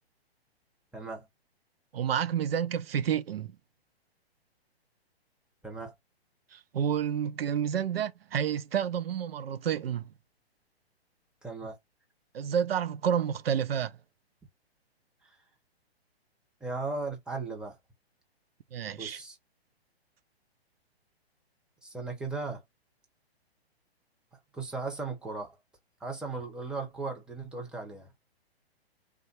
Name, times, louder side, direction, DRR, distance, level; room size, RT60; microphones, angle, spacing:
voice 1, 0.9-1.3 5.6-5.9 11.4-11.8 15.2-15.4 16.6-17.8 19.0-19.4 21.8-22.6 24.5-25.6 26.0-28.1, right 3 dB, 5° right, 1.0 m, -37 dB
voice 2, 1.9-3.6 6.5-10.1 12.3-13.9 18.7-19.2, right 8 dB, 65° right, 0.6 m, -29 dB
3.4 x 2.5 x 4.3 m
figure-of-eight pair, 125°, 32 cm